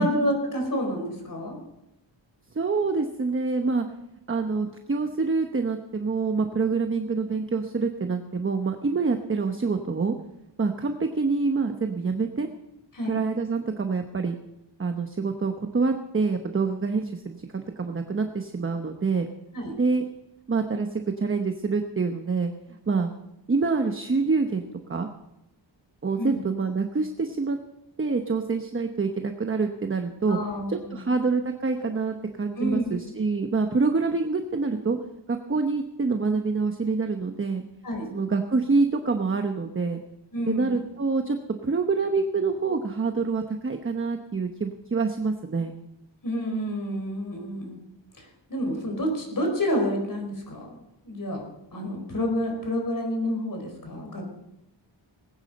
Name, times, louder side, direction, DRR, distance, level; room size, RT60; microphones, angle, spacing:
voice 1, 0.0-1.6 12.9-13.2 19.5-19.7 26.2-26.4 30.3-31.1 32.6-33.0 37.8-38.1 40.3-40.8 46.2-47.8 48.2-50.8 51.0-51.4 51.7-54.2, equal, 45° left, 2 dB, 4.8 m, -29 dB
voice 2, 2.5-3.9 4.3-10.1 10.6-12.5 13.1-14.4 14.8-19.3 19.8-20.0 20.5-22.5 22.9-23.1 23.5-25.1 26.0-27.6 28.0-30.4 30.7-35.0 35.3-37.6 38.1-40.0 40.5-41.4 41.6-45.7, right 4 dB, 30° right, 5 dB, 1.0 m, -26 dB
19.5 x 9.7 x 5.3 m, 0.87 s
wide cardioid pair, 130°, 45 cm